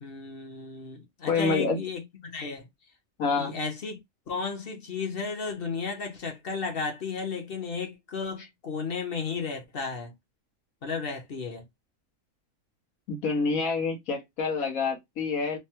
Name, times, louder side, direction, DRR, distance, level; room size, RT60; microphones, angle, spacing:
voice 1, 0.0-2.6 3.3-4.0 4.3-10.1 10.8-11.7, left 4 dB, 50° left, 0.9 m, -34 dB
voice 2, 1.3-1.8 3.2-3.5 13.1-15.6, left 4 dB, 85° left, 1.4 m, -27 dB
3.3 x 2.1 x 2.8 m
omnidirectional pair, 1.4 m